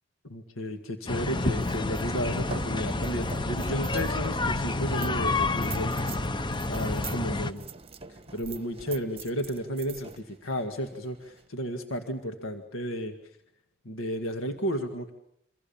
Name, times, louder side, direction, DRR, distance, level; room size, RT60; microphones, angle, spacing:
voice 1, 0.2-5.9 6.7-7.6 8.1-13.1 13.8-15.1, equal, 85° left, 5 dB, 2.0 m, -33 dB
sound 1, 1.1-7.5, left 2 dB, 25° left, 0.9 m, -29 dB
sound 2, 1.5-11.5, right 6 dB, 30° right, 1.2 m, -45 dB
28.0 x 24.5 x 7.2 m, 0.79 s
head